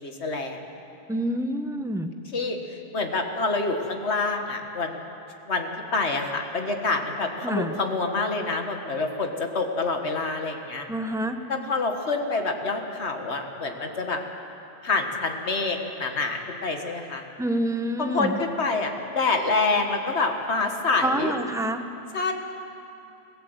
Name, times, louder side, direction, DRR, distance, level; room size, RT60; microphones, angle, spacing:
voice 1, 0.0-0.6 2.3-2.6 2.9-5.0 5.5-10.9 11.5-14.2 14.8-17.2 18.0-21.3 22.1-22.3, left 3 dB, 75° left, 4 dB, 2.0 m, -27 dB
voice 2, 1.1-2.1 7.4-7.8 10.9-11.5 17.4-18.4 21.0-21.8, right 1 dB, 5° right, 7 dB, 1.0 m, -27 dB
28.5 x 16.5 x 8.1 m, 2.8 s
omnidirectional pair, 1.1 m